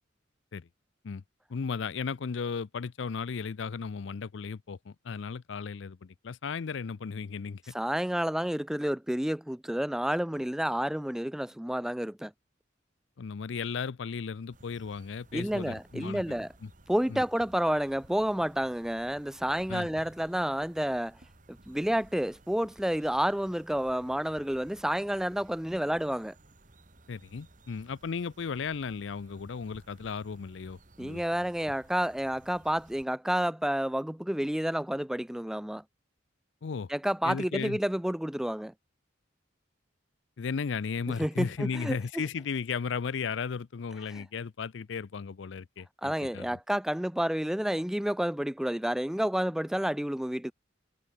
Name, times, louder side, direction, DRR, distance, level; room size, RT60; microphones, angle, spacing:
voice 1, 1.5-7.7 13.2-16.7 17.1-17.2 19.7-19.9 27.1-31.5 36.6-36.9 37.2-37.8 40.4-46.6, left 5 dB, 70° left, 0.5 m, -35 dB
voice 2, 7.7-12.3 15.3-16.5 16.9-21.2 21.5-26.3 31.0-35.8 36.9-38.7 41.2-42.0 44.1-44.2 46.0-50.5, equal, 5° right, 0.3 m, -30 dB
sound 1, 14.5-33.1, right 2 dB, 45° right, 2.0 m, -57 dB
head